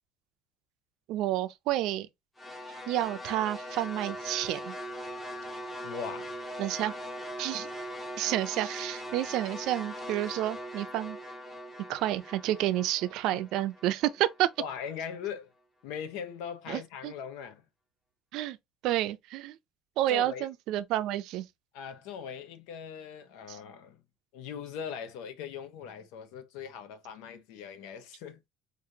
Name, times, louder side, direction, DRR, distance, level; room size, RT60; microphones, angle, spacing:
voice 1, 1.1-2.1 2.9-4.8 6.6-6.9 7.4-7.7 8.2-11.2 11.9-14.5 16.7-17.1 18.3-18.6 18.8-19.6 20.0-21.5 23.5-23.6, right 14 dB, 55° right, 0.5 m, -30 dB
sound 1, 2.4-14.6, equal, 10° left, 0.7 m, -41 dB
voice 2, 5.8-6.4 14.6-15.5 15.8-17.6 20.1-20.5 21.7-24.0 24.3-28.4, left 7 dB, 85° left, 0.9 m, -40 dB
5.0 x 2.6 x 2.7 m
cardioid pair, 180°, 0 cm